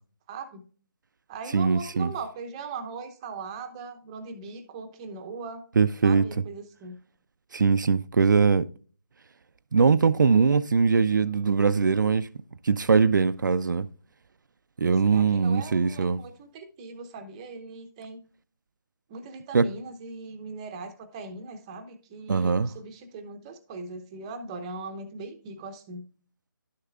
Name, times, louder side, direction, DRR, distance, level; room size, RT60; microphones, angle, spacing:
voice 1, 0.3-0.6 1.3-5.6 6.0-6.9 15.0-18.2 19.1-26.0, right 4 dB, 15° right, 0.8 m, -39 dB
voice 2, 1.5-2.1 5.8-6.2 7.5-8.6 9.7-12.3 12.6-13.9 14.8-16.2 19.5-19.7 22.3-22.7, right 5 dB, 65° right, 0.5 m, -21 dB
11.5 x 6.6 x 2.4 m
figure-of-eight pair, 160°, 11 cm